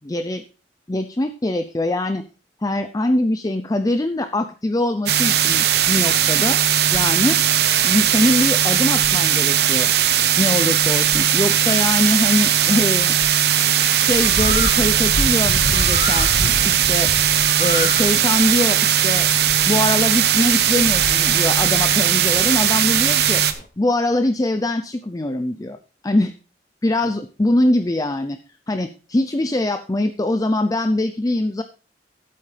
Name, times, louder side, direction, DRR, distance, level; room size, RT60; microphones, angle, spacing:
voice 1, 0.0-0.4 0.9-2.2 2.6-6.6 6.9-7.4 7.8-9.9 10.4-13.1 14.0-17.1 17.6-19.3 19.7-23.4 23.8-25.8 26.0-26.3 26.8-28.4 28.7-31.6, left 1 dB, 20° left, 8 dB, 0.5 m, -22 dB
sound 1, 5.1-23.5, right 10 dB, 65° right, 0.9 m, -18 dB
Bird, 14.1-23.7, left 2 dB, 50° left, 0.9 m, -30 dB
12.5 x 8.6 x 3.3 m, 0.36 s
head